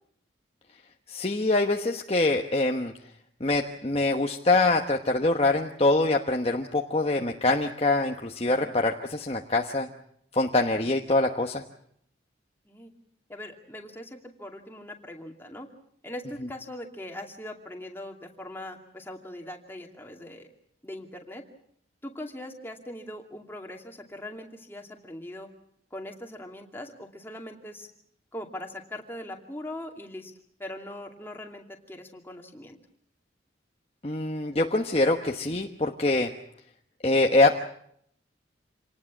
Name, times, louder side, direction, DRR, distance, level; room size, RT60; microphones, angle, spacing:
voice 1, 1.1-2.9 3.4-9.9 10.3-11.6 34.0-36.3 37.0-37.6, left 2 dB, 30° left, 3 dB, 1.2 m, -24 dB
voice 2, 13.3-15.7 16.0-20.5 20.8-21.4 22.0-25.5 25.9-27.9 28.3-30.3 30.6-32.8, left 1 dB, 10° left, 2 dB, 2.5 m, -41 dB
27.0 x 19.0 x 7.3 m, 0.69 s
head